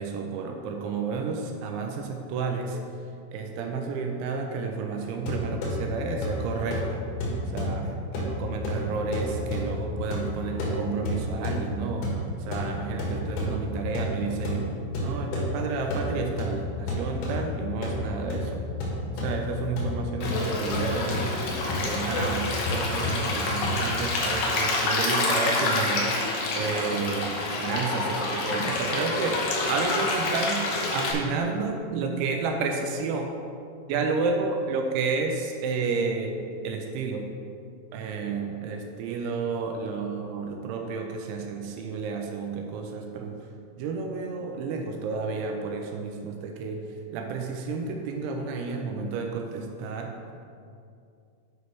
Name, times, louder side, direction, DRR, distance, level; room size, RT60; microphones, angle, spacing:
voice 1, 0.0-2.8 3.3-7.0 7.5-18.6 19.2-21.3 21.7-26.1 26.5-33.4 33.9-37.3 37.9-43.5 43.8-50.4, right 4 dB, 80° right, 3 dB, 2.7 m, -31 dB
sound 1, 5.2-23.9, left 1 dB, 90° left, 4.2 m, -31 dB
Stream, 20.2-31.1, left 2 dB, 70° left, 3.0 m, -28 dB
8.9 x 5.2 x 4.6 m, 2.4 s
omnidirectional pair, 5.7 m